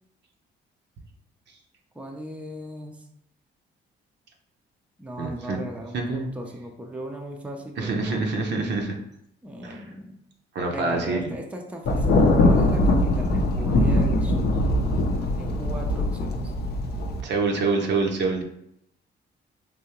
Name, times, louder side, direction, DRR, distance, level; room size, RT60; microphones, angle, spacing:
voice 1, 1.9-3.0 5.0-8.2 9.4-10.2 10.7-12.1 12.5-14.5 15.3-16.5, right 1 dB, 5° right, 1 dB, 0.5 m, -37 dB
voice 2, 5.2-5.6 5.9-6.3 7.8-9.0 9.6-9.9 10.5-11.3 17.2-18.4, right 3 dB, 65° right, 2 dB, 0.7 m, -26 dB
Thunder, 11.9-17.2, left 1 dB, 55° left, 0.5 m, -21 dB
3.5 x 2.7 x 2.9 m, 0.76 s
cardioid pair, 90°, 20 cm